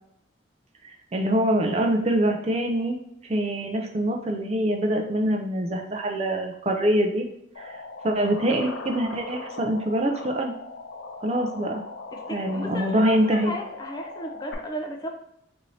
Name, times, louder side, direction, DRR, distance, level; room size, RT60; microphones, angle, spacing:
voice 1, 1.1-3.0 3.2-7.2 7.6-7.8 8.0-10.5 11.2-11.8 12.3-13.5, right 1 dB, 35° right, 3 dB, 0.4 m, -24 dB
sound 1, 7.5-14.5, left 4 dB, 80° left, 0.6 m, -39 dB
voice 2, 12.1-15.1, equal, 20° left, 2 dB, 0.4 m, -35 dB
4.2 x 2.7 x 3.1 m, 0.76 s
head